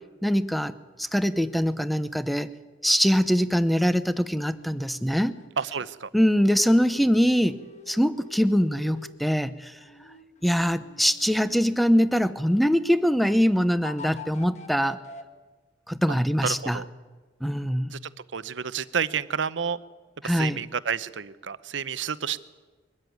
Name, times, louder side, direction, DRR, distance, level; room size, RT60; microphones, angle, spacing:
voice 1, 0.2-2.5 2.8-5.3 6.1-7.6 7.9-9.7 10.4-15.0 15.9-16.8 17.4-17.9 20.2-20.6, equal, ahead, 13 dB, 0.7 m, -23 dB
sound 1, 4.2-5.6 6.3-9.2 9.8-13.1 13.8-15.2, left 2 dB, 40° left, 1.4 m, -47 dB
voice 2, 5.6-6.1 16.4-16.9 17.9-18.0 18.3-19.8 20.2-22.4, right 7 dB, 85° right, 15 dB, 0.8 m, -30 dB
22.5 x 13.0 x 9.3 m, 1.3 s
head